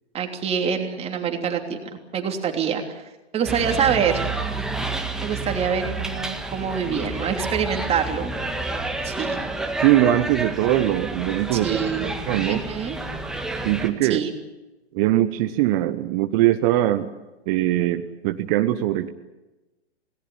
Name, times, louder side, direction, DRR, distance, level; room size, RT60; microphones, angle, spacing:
voice 1, 0.1-4.3 5.2-8.3 9.0-9.4 11.5-12.1 12.4-13.0 14.1-14.3, right 7 dB, 20° right, 4 dB, 3.2 m, -25 dB
sound 1, 3.5-13.9, right 2 dB, ahead, 1.9 m, -29 dB
voice 2, 9.8-12.6 13.6-14.2 14.9-17.1 17.5-19.1, right 14 dB, 35° right, 7 dB, 1.1 m, -21 dB
27.0 x 18.5 x 8.7 m, 1.1 s
figure-of-eight pair, 120°, 33 cm